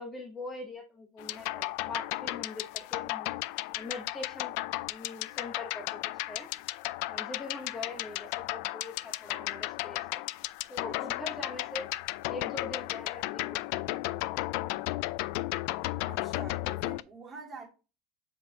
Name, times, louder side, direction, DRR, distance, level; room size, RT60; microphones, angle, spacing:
voice 1, 0.0-3.3 3.7-4.5 4.9-6.0 6.3-6.5 7.1-10.2 10.7-11.9 12.3-14.5, left 3 dB, 10° left, 0.9 m, -42 dB
sound 1, 1.2-17.0, left 19 dB, 50° left, 0.3 m, -34 dB
voice 2, 16.1-17.7, right 4 dB, 15° right, 2.0 m, -46 dB
7.4 x 5.4 x 2.8 m
supercardioid pair, 175°, 0 cm